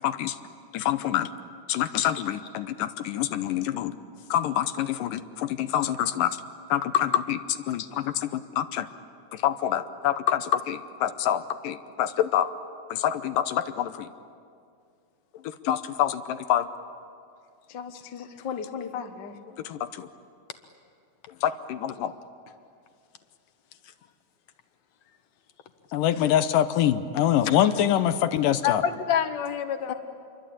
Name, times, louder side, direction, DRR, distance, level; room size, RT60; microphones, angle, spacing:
voice 1, 0.0-0.4 0.7-1.3 1.7-4.0 4.3-6.4 6.7-8.9 9.3-12.5 12.9-14.1 15.4-16.7 19.6-20.1 21.4-22.1 25.9-28.8, left 11 dB, 85° left, 10 dB, 2.5 m, -26 dB
voice 2, 17.7-19.3 29.9-30.0, left 7 dB, 45° left, 6 dB, 1.6 m, -35 dB
voice 3, 28.6-29.9, left 9 dB, 60° left, 8 dB, 2.4 m, -27 dB
27.5 x 23.0 x 8.7 m, 2.3 s
omnidirectional pair, 3.8 m